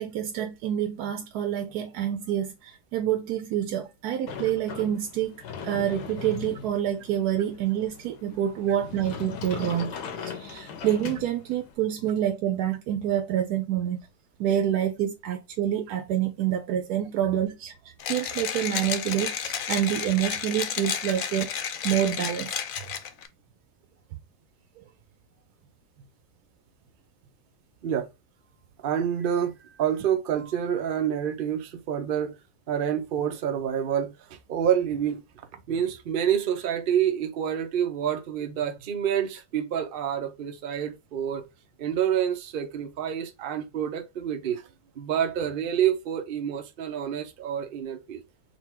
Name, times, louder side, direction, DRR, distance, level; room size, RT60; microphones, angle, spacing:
voice 1, 0.0-5.4 5.6-14.0 14.4-21.5 21.8-22.5 24.8-24.9, right 11 dB, 85° right, 1.1 m, -27 dB
Sliding door, 4.3-11.7, left 7 dB, 85° left, 1.4 m, -39 dB
Mechanisms, 18.0-23.3, left 8 dB, 65° left, 0.9 m, -32 dB
voice 2, 28.8-32.3 32.7-35.2 35.7-41.4 41.8-44.7 45.0-48.2, right 9 dB, 60° right, 0.5 m, -28 dB
4.1 x 2.2 x 4.3 m
omnidirectional pair, 1.7 m